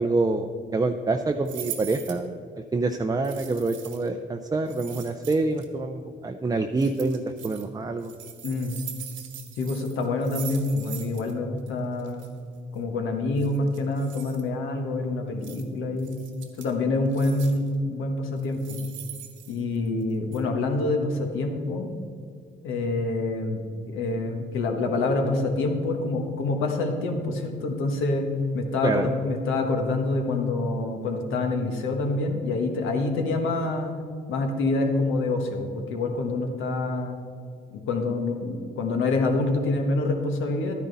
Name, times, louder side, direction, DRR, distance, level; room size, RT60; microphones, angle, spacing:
voice 1, 0.0-2.4 2.7-8.1 28.8-29.1, right 3 dB, 20° right, 5 dB, 0.5 m, -26 dB
sound 1, 1.5-2.3 3.2-4.1 4.7-5.7 6.8-7.7 8.0-11.3 11.6-11.7 12.0-12.3 13.4-14.4 15.4-15.6 16.0-16.7 17.1-17.7 18.4-20.0 20.3-20.4, right 10 dB, 80° right, 1.3 m, -41 dB
voice 2, 8.4-8.8 9.5-12.3 12.7-16.2 16.6-18.8 19.5-21.9 22.6-28.3 28.5-34.0 34.3-37.2 37.7-40.7, left 2 dB, 85° left, 4 dB, 1.4 m, -26 dB
12.0 x 10.5 x 4.1 m, 2.3 s
cardioid pair, 90°, 20 cm